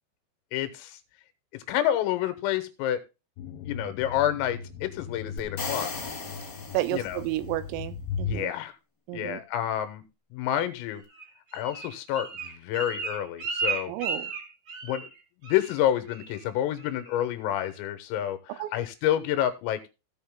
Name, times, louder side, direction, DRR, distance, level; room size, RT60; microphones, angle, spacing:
voice 1, 0.5-1.0 1.5-3.0 3.7-5.9 6.9-7.2 8.2-8.7 9.1-11.0 11.5-13.9 14.8-15.1 15.4-19.8, left 11 dB, 90° left, 10 dB, 3.6 m, -29 dB
sound 1, 3.4-8.4, left 5 dB, 70° left, 3.2 m, -38 dB
sound 2, 5.4-7.4, left 4 dB, 45° left, 1.3 m, -36 dB
voice 2, 6.7-8.5 9.1-9.4 13.9-14.3 18.5-18.7, right 16 dB, 85° right, 13 dB, 3.4 m, -31 dB
Bird, 11.1-15.2 15.4-15.8 16.1-16.4 16.8-17.2 17.6-17.7, right 4 dB, 45° right, 1.6 m, -34 dB
16.0 x 5.5 x 3.6 m, 0.28 s
omnidirectional pair, 5.9 m